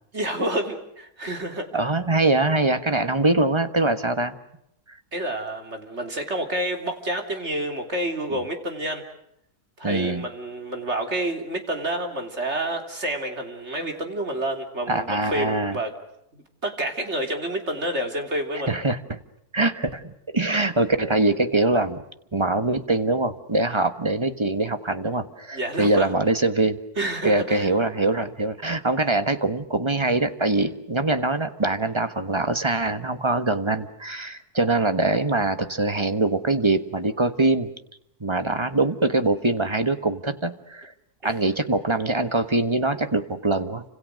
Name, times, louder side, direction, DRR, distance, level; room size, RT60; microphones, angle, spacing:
voice 1, 0.1-1.7 5.1-9.1 9.8-15.9 16.3-18.7 25.5-26.1 27.0-27.7 41.2-41.3, right 1 dB, 45° right, 5 dB, 3.5 m, -29 dB
voice 2, 1.7-4.4 8.3-8.4 9.8-10.3 14.9-15.8 18.7-19.2 19.5-22.0 22.3-26.8 27.2-37.7 38.2-40.9 41.2-43.8, right 2 dB, 20° right, 10 dB, 1.3 m, -23 dB
29.5 x 26.5 x 6.5 m, 0.78 s
omnidirectional pair, 1.7 m